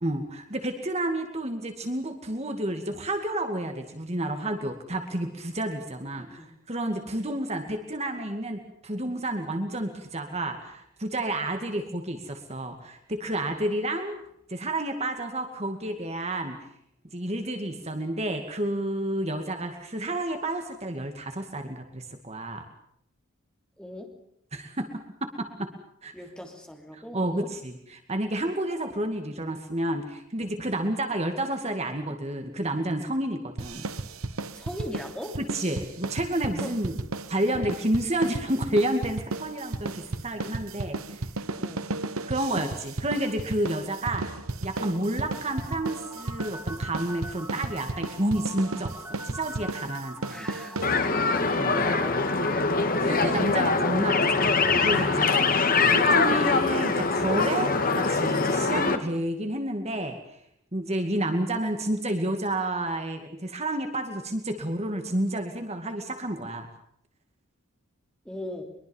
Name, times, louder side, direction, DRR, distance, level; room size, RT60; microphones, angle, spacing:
voice 1, 0.0-14.2 14.5-16.6 17.1-22.6 24.5-25.7 26.0-26.1 27.1-33.8 35.4-36.9 37.3-41.2 42.3-44.2 44.6-48.9 49.2-50.5 51.6-51.8 53.0-55.4 55.9-60.2 60.7-66.7, right 1 dB, 30° right, 6 dB, 2.3 m, -30 dB
voice 2, 6.2-6.5 23.8-24.2 26.1-27.5 34.5-35.4 36.6-36.7 37.5-37.7 41.6-41.9 50.3-52.6 68.2-68.8, left 1 dB, 5° left, 3 dB, 3.2 m, -40 dB
sound 1, 33.6-51.4, right 2 dB, 75° right, 1.2 m, -34 dB
sound 2, 45.5-56.2, equal, 15° right, 5.1 m, -42 dB
sound 3, 50.8-59.0, left 4 dB, 40° left, 1.9 m, -23 dB
23.5 x 23.0 x 7.2 m, 0.70 s
head